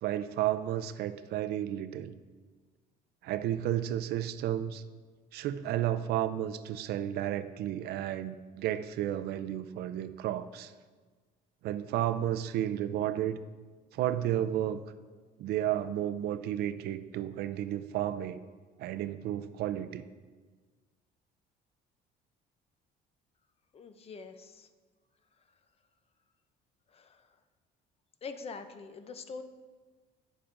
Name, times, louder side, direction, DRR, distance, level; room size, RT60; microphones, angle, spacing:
voice 1, 0.0-2.1 3.2-4.8 5.3-10.7 11.6-13.4 13.9-14.8 15.4-18.4 18.8-20.0, right 12 dB, 70° right, 13 dB, 0.4 m, -32 dB
voice 2, 23.7-24.7 26.9-27.4 28.2-29.4, left 4 dB, 35° left, 9 dB, 0.5 m, -44 dB
10.0 x 6.9 x 2.5 m, 1.4 s
cardioid pair, 110°, 17 cm